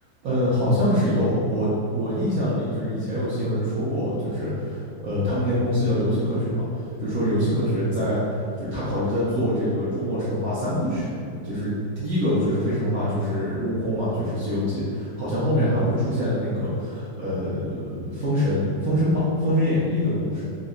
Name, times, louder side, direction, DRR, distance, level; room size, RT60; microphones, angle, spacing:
voice 1, 0.2-8.2 8.6-11.1 11.4-20.4, equal, 75° right, -10 dB, 0.8 m, -24 dB
3.6 x 2.1 x 2.3 m, 2.4 s
omnidirectional pair, 2.1 m